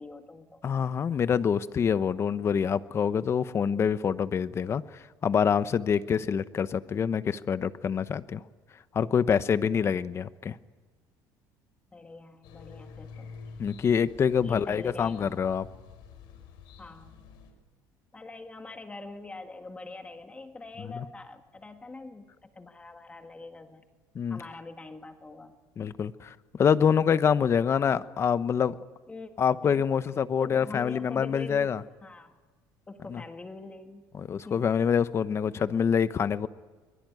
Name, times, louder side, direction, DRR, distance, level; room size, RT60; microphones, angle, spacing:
voice 1, 0.0-0.6 11.9-13.3 14.4-15.3 16.8-17.3 18.1-23.9 24.3-25.6 29.1-29.3 29.6-29.8 30.4-31.7 32.0-32.3 32.9-34.0 34.4-34.7, left 3 dB, 15° left, 6 dB, 1.7 m, -44 dB
voice 2, 0.6-4.8 5.2-8.4 8.9-10.6 13.6-15.7 20.8-21.0 24.1-24.4 25.8-28.8 29.4-31.8 33.1-33.2 34.2-36.5, left 7 dB, 35° left, 14 dB, 1.0 m, -26 dB
sound 1, 12.4-17.5, left 5 dB, 75° left, 5.2 m, -48 dB
23.0 x 22.5 x 9.3 m, 1.3 s
cardioid pair, 120°, 8 cm